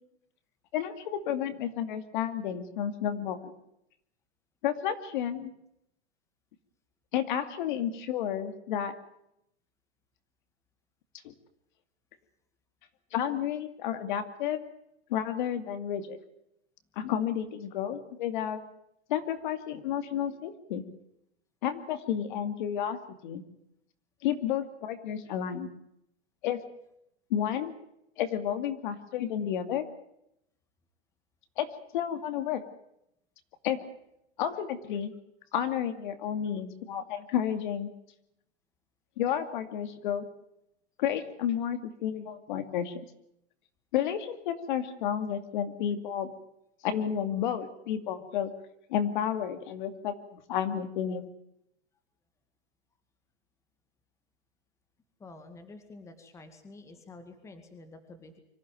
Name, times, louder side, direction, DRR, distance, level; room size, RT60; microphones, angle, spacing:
voice 1, 0.7-3.5 4.6-5.5 7.1-8.9 11.2-11.3 13.1-14.6 15.1-16.2 17.0-18.6 19.1-20.8 21.6-23.4 24.2-25.7 26.4-26.6 27.3-27.7 28.2-29.9 31.6-31.7 31.9-32.6 33.6-33.8 34.4-35.1 35.5-37.9 39.2-40.2 41.0-43.0 43.9-46.3 46.8-48.5 48.9-51.2, left 9 dB, 50° left, 10 dB, 2.4 m, -31 dB
voice 2, 55.2-58.4, left 2 dB, 10° left, 7 dB, 2.1 m, -49 dB
25.0 x 15.0 x 9.1 m, 0.78 s
supercardioid pair, 165°, 32 cm